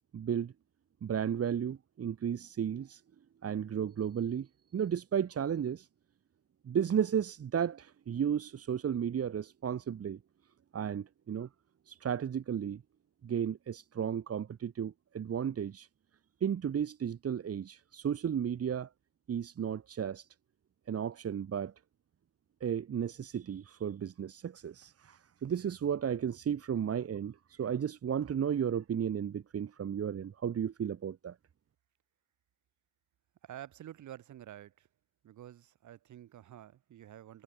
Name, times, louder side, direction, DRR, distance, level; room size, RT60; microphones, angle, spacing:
voice 1, 0.1-0.5 1.0-3.0 3.4-5.9 6.6-10.2 10.7-11.5 11.9-12.8 13.2-15.9 16.4-18.9 19.3-20.3 20.9-21.7 22.6-31.3, right 8 dB, 50° right, 2.7 m, -34 dB
voice 2, 33.4-34.9 35.2-37.4, right 11 dB, 75° right, 7.7 m, -49 dB
cardioid pair, 90°, 30 cm